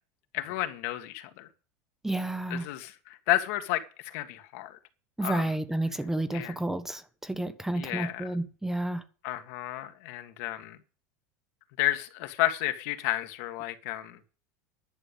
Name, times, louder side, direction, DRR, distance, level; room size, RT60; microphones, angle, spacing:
voice 1, 0.3-1.5 2.5-4.8 5.2-5.5 6.3-6.6 7.7-8.3 9.2-10.8 11.8-14.2, left 15 dB, 65° left, 1.7 m, -32 dB
voice 2, 2.0-2.7 5.2-9.0, right 1 dB, 5° right, 0.8 m, -31 dB
11.0 x 6.8 x 8.1 m
supercardioid pair, 145°, 8 cm